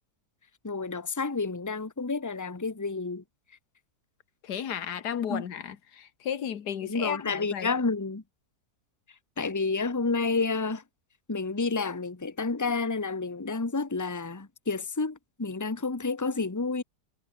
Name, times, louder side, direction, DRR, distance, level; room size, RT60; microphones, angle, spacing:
voice 1, 0.6-3.2 5.3-5.4 6.8-8.2 9.4-10.8 11.3-16.8, left 4 dB, 10° left, 1.2 m, -30 dB
voice 2, 4.4-7.7, left 8 dB, 75° left, 2.0 m, -34 dB
omnidirectional pair, 1.8 m